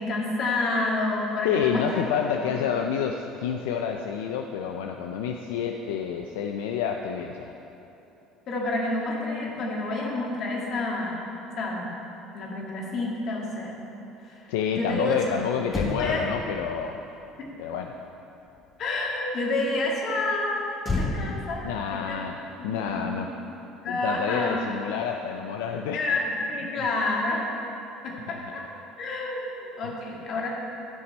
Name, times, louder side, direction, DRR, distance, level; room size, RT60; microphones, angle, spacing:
voice 1, 0.0-2.0 2.5-2.6 8.5-11.2 11.6-11.9 12.3-13.8 14.2-14.5 14.7-15.2 16.0-16.5 17.4-17.5 18.8-23.3 23.8-24.6 25.9-27.4 28.0-28.6 29.0-30.5, left 2 dB, 55° left, -2 dB, 1.9 m, -29 dB
voice 2, 1.4-7.5 14.5-17.0 17.6-17.9 21.6-23.3 23.9-26.0 28.3-28.5 29.8-29.9, left 7 dB, 85° left, 3 dB, 0.4 m, -29 dB
Motor vehicle (road), 15.7-19.2 20.8-23.4 23.7-23.9, left 2 dB, 30° left, 1.2 m, -34 dB
11.0 x 5.9 x 4.2 m, 2.9 s
supercardioid pair, 85°, 0 cm